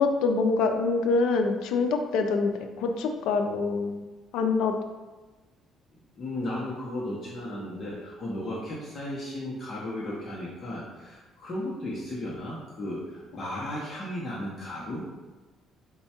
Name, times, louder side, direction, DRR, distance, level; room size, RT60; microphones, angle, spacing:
voice 1, 0.0-2.5 2.8-4.0 4.3-4.7, left 4 dB, 80° left, 5 dB, 0.4 m, -25 dB
voice 2, 6.2-15.1, left 1 dB, 40° left, -5 dB, 0.8 m, -35 dB
4.3 x 2.3 x 4.3 m, 1.2 s
cardioid pair, 115°, 0 cm